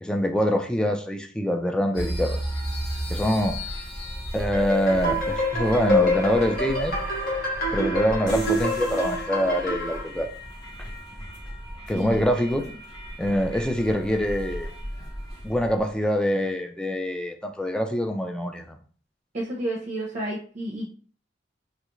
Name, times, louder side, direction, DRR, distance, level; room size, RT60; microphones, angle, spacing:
voice 1, 0.0-2.4 3.1-3.6 4.3-7.0 7.7-10.3 11.9-12.6 13.2-14.7 15.4-18.8, equal, 5° left, 4 dB, 0.3 m, -25 dB
sound 1, 1.9-15.9, equal, 25° left, 0.9 m, -35 dB
sound 2, 4.5-10.0, left 1 dB, 55° left, 1.0 m, -26 dB
voice 2, 19.3-20.9, right 1 dB, 40° right, -3 dB, 0.7 m, -31 dB
3.1 x 2.4 x 3.0 m, 0.43 s
head